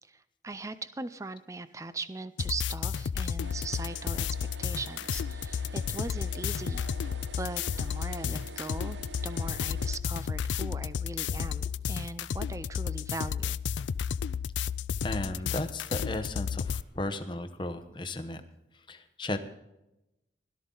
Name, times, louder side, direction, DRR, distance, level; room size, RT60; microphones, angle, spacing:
voice 1, 0.0-4.3 4.6-13.6, right 3 dB, 15° right, 13 dB, 0.5 m, -40 dB
sound 1, 2.4-16.8, left 7 dB, 85° left, 0.4 m, -32 dB
sound 2, 3.4-10.0, right 4 dB, 85° right, 0.9 m, -48 dB
voice 2, 15.0-18.4 18.9-19.4, left 1 dB, 25° left, 8 dB, 0.9 m, -35 dB
17.0 x 13.0 x 3.9 m, 0.91 s
head